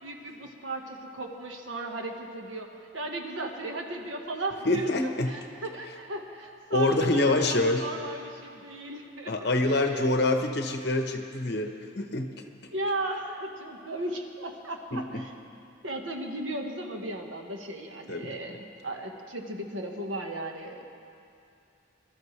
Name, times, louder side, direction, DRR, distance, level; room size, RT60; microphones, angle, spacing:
voice 1, 0.0-2.7 2.9-4.9 5.3-10.1 12.7-15.3 15.8-20.8, right 1 dB, 85° right, 2 dB, 1.4 m, -36 dB
voice 2, 4.6-5.3 6.7-7.9 9.3-12.3 14.9-15.2 18.1-18.3, left 2 dB, 55° left, 5 dB, 1.0 m, -26 dB
23.0 x 13.0 x 3.3 m, 2.6 s
head